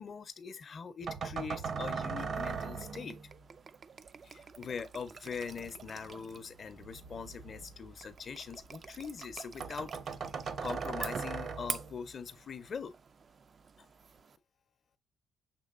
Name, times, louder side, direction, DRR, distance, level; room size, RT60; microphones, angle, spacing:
voice 1, 0.0-3.2 4.2-9.9 10.6-13.0 13.8-13.9, left 6 dB, 50° left, 0.6 m, -42 dB
sound 1, 1.0-3.4 5.4-8.7 9.0-9.1 9.3-9.4 9.6-12.1, right 5 dB, 60° right, 0.8 m, -40 dB
sound 2, 1.7-14.4, right 5 dB, 45° right, 0.3 m, -48 dB
6.7 x 3.2 x 2.5 m
cardioid pair, 90°, 0 cm